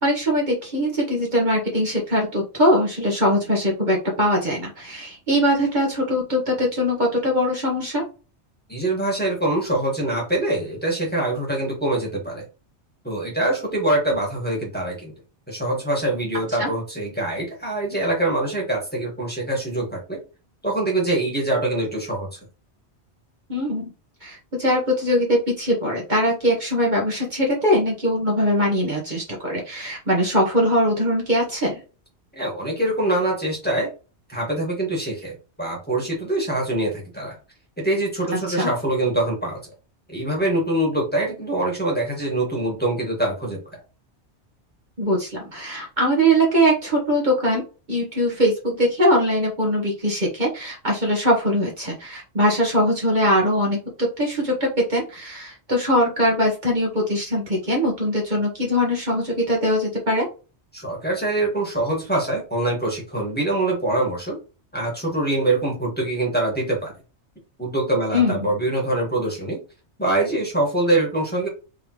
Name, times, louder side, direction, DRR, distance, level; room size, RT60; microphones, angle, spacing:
voice 1, 0.0-8.0 16.6-16.7 23.5-23.9 24.2-31.8 38.5-38.7 45.0-47.6 47.9-60.3 68.1-68.5, equal, 40° right, -2 dB, 1.4 m, -21 dB
voice 2, 8.7-12.4 13.0-15.1 15.5-20.2 20.6-22.4 32.3-33.9 34.3-37.4 37.8-39.6 40.1-43.6 60.7-64.4 64.7-66.9 67.6-69.6 70.0-71.5, right 1 dB, 10° left, -3 dB, 1.6 m, -24 dB
3.7 x 3.5 x 3.0 m, 0.33 s
omnidirectional pair, 1.2 m